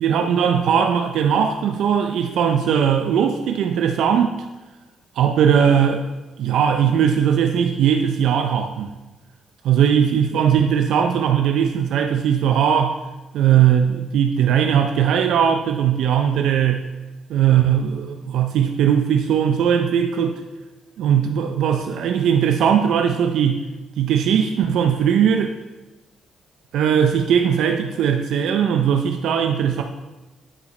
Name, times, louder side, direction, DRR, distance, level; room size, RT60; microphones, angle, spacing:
voice 1, 0.0-4.3 5.2-6.0 6.4-8.9 9.6-13.0 13.3-16.8 17.3-20.4 21.0-23.6 24.0-25.5 26.7-29.8, right 8 dB, 80° right, 5 dB, 0.5 m, -19 dB
9.8 x 4.9 x 4.2 m, 1.1 s
cardioid pair, 90°, 0 cm